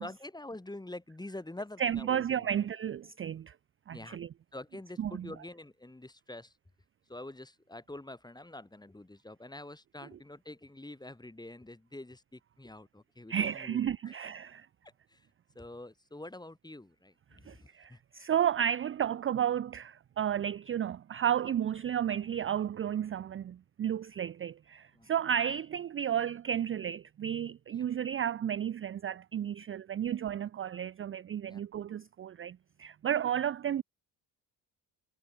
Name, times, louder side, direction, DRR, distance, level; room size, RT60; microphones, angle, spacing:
voice 1, 0.0-2.5 3.9-4.2 4.5-6.5 7.1-14.1 15.1-15.2 15.5-18.0 25.0-25.1 27.7-27.9 31.5-31.6, left 2 dB, 10° left, 1.2 m, -46 dB
voice 2, 1.8-3.5 3.9-4.3 5.0-5.3 10.1-10.2 13.3-14.7 17.4-33.8, right 9 dB, 30° right, 0.4 m, -32 dB
supercardioid pair, 60°, 48 cm